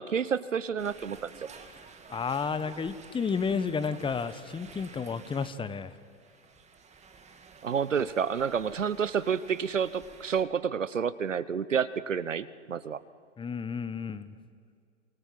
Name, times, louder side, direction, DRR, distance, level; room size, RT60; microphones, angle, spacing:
voice 1, 0.0-1.3 7.6-13.0, right 7 dB, 90° right, 17 dB, 1.1 m, -29 dB
sound 1, 0.8-10.4, right 5 dB, 20° right, 2.6 m, -51 dB
voice 2, 2.1-5.9 13.4-14.3, left 5 dB, 15° left, 13 dB, 1.2 m, -31 dB
27.5 x 25.0 x 7.8 m, 2.1 s
hypercardioid pair, 105°, 37 cm